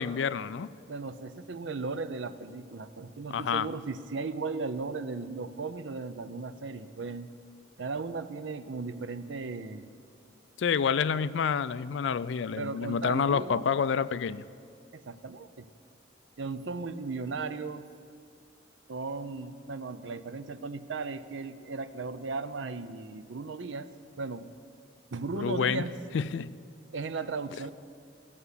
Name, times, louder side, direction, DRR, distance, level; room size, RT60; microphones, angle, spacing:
voice 1, 0.0-0.7 3.3-3.7 10.6-14.4 25.4-25.8 26.1-26.5, left 6 dB, 75° left, 16 dB, 0.4 m, -28 dB
voice 2, 0.9-7.3 7.8-9.9 12.6-13.7 14.9-15.7 16.4-17.9 18.9-23.9 24.2-24.5 25.1-25.9 26.9-27.7, right 4 dB, 80° right, 12 dB, 0.6 m, -36 dB
14.5 x 6.9 x 9.7 m, 2.3 s
head